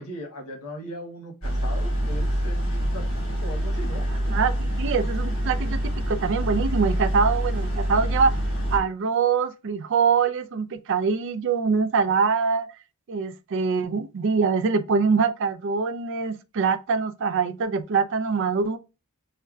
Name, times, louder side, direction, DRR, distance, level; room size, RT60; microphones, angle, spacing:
voice 1, 0.0-4.0, equal, 85° left, 1.1 m, -38 dB
sound 1, 1.4-8.8, equal, 65° left, 1.8 m, -26 dB
voice 2, 4.3-8.3 8.7-12.8 13.1-18.8, right 5 dB, 55° right, 0.4 m, -24 dB
6.4 x 2.1 x 2.4 m
head